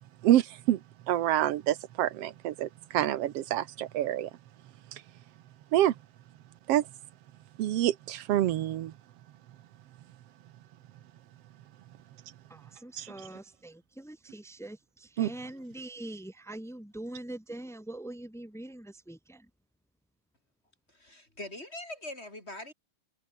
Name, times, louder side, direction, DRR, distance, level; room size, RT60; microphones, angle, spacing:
voice 1, 0.2-0.8 1.1-4.3 4.9-5.0 5.7-5.9 6.7-6.9 7.6-8.9 13.0-13.1 15.2-15.3, right 13 dB, 70° right, 1.5 m, -27 dB
voice 2, 12.5-19.5, right 1 dB, ahead, 0.8 m, -43 dB
voice 3, 20.9-22.7, left 1 dB, 15° left, 7.9 m, -42 dB
omnidirectional pair, 3.8 m